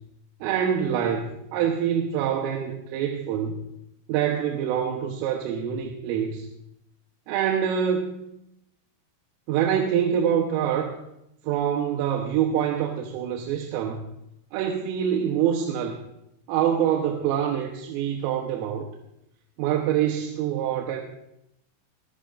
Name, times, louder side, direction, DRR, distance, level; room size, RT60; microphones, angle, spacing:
voice 1, 0.4-3.6 4.1-6.5 7.3-8.1 9.5-11.0 11.5-14.0 14.5-16.0 16.5-18.9 19.6-21.0, right 9 dB, 85° right, 2 dB, 3.6 m, -25 dB
22.5 x 13.5 x 2.5 m, 0.82 s
omnidirectional pair, 5.7 m